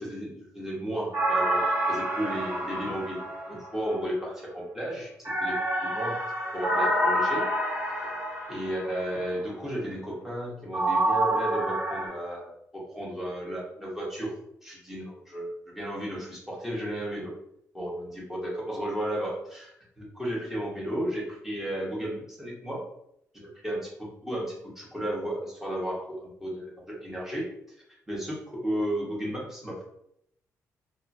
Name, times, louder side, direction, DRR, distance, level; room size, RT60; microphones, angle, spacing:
voice 1, 0.0-5.1 5.4-6.2 6.5-7.5 8.0-8.1 8.5-14.3 14.6-17.4 17.7-22.8 23.3-27.5 28.1-29.8, right 1 dB, 5° right, -5 dB, 1.0 m, -34 dB
sound 1, 1.1-4.0 5.2-9.1 10.7-12.1, right 1 dB, 60° right, 1.1 m, -28 dB
2.7 x 2.5 x 2.6 m, 0.75 s
cardioid pair, 120°, 6 cm